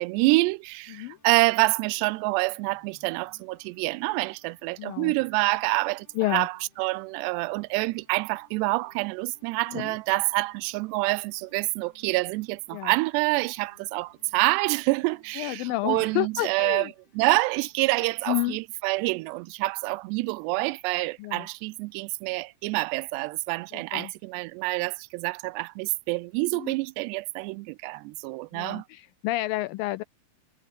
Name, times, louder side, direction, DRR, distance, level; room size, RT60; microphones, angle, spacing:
voice 1, 0.0-16.9 17.2-28.8, right 23 dB, 85° right, 2.7 m, -27 dB
sound 1, 0.9-17.9, left 4 dB, 65° left, 9.5 m, -64 dB
voice 2, 4.8-5.1 6.2-6.5 9.7-10.0 12.7-12.9 15.4-16.9 18.3-18.6 21.2-21.5 23.7-24.1 26.5-26.8 28.5-30.0, left 18 dB, 85° left, 2.0 m, -30 dB
omnidirectional pair, 4.8 m